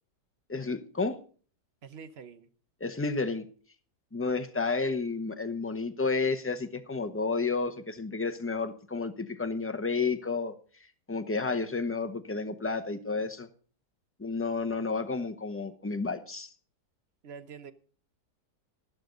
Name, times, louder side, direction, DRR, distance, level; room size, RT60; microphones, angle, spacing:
voice 1, 0.5-1.2 2.8-3.5 4.1-10.5 11.1-13.5 14.2-16.5, left 4 dB, 15° left, 0.4 m, -31 dB
voice 2, 1.8-2.5 17.2-17.7, right 6 dB, 45° right, 1.0 m, -45 dB
12.0 x 12.0 x 3.9 m
omnidirectional pair, 1.7 m